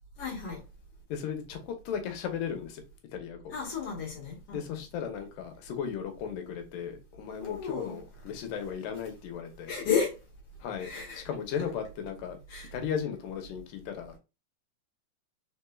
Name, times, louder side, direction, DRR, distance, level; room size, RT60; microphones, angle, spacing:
voice 1, 0.2-0.6 3.5-4.8 7.4-8.0 9.7-10.2 10.8-11.2 12.5-12.7, left 6 dB, 50° left, 2.3 m, -33 dB
voice 2, 1.1-2.8 3.1-3.4 4.5-9.7 10.6-10.9 11.1-12.4 12.7-14.2, left 7 dB, 80° left, 2.5 m, -36 dB
4.9 x 4.3 x 2.3 m
omnidirectional pair, 3.9 m